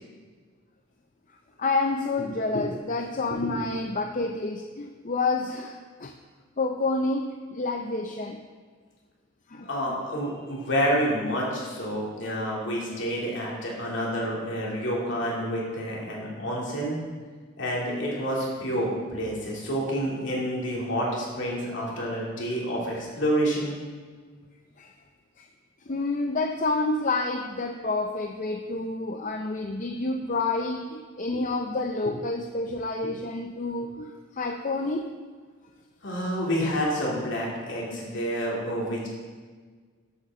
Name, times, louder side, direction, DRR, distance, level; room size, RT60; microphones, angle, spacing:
voice 1, 1.6-6.1 6.6-7.2 7.5-8.4 9.5-10.0 24.8-24.9 25.4-25.5 25.9-35.1, left 3 dB, 40° left, 4 dB, 0.5 m, -29 dB
voice 2, 9.6-17.0 17.6-23.8 36.0-39.1, equal, 60° left, -4 dB, 2.9 m, -28 dB
13.0 x 8.3 x 3.8 m, 1.5 s
head